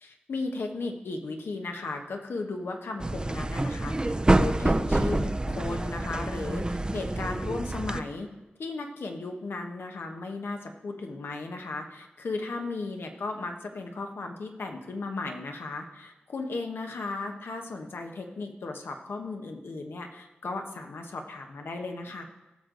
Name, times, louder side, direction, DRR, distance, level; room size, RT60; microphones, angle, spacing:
voice 1, 0.0-8.3 8.6-22.2, left 3 dB, 80° left, 4 dB, 1.2 m, -35 dB
sound 1, 3.0-8.0, right 2 dB, 20° right, 0.6 m, -27 dB
17.0 x 6.6 x 3.9 m, 1.0 s
cardioid pair, 55°, 4 cm